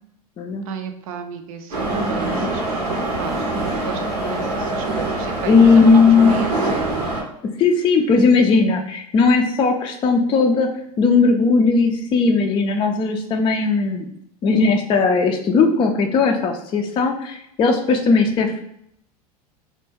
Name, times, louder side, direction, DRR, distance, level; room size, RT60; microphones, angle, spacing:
voice 1, 0.7-3.5 3.7-7.2, right 6 dB, 60° right, 7 dB, 0.5 m, -33 dB
Subway metro underground, 1.7-7.2, right 2 dB, 80° right, 0.8 m, -24 dB
voice 2, 5.4-6.4 7.6-10.7 11.0-14.1 14.4-18.6, left 4 dB, 25° left, 4 dB, 0.3 m, -17 dB
2.2 x 2.2 x 3.2 m, 0.72 s
hypercardioid pair, 80°, 20 cm